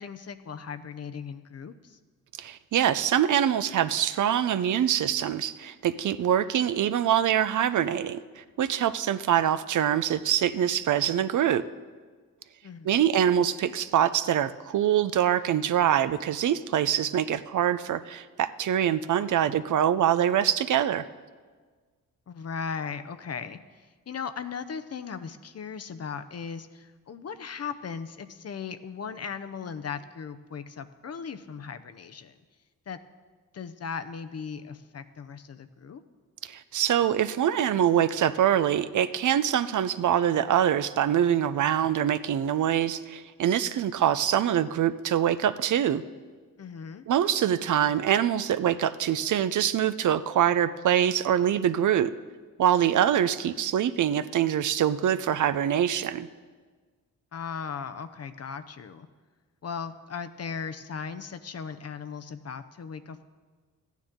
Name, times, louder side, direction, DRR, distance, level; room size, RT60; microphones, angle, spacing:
voice 1, 0.0-2.0 12.6-13.1 22.3-32.3 32.9-33.0 33.5-36.0 46.6-47.1 57.3-59.1 59.6-63.2, left 6 dB, 45° left, 10 dB, 0.7 m, -37 dB
voice 2, 2.4-11.6 12.8-21.0 36.4-46.0 47.1-52.1 52.6-56.3, right 10 dB, 60° right, 13 dB, 0.5 m, -24 dB
14.0 x 9.2 x 3.7 m, 1.5 s
cardioid pair, 55°, 35 cm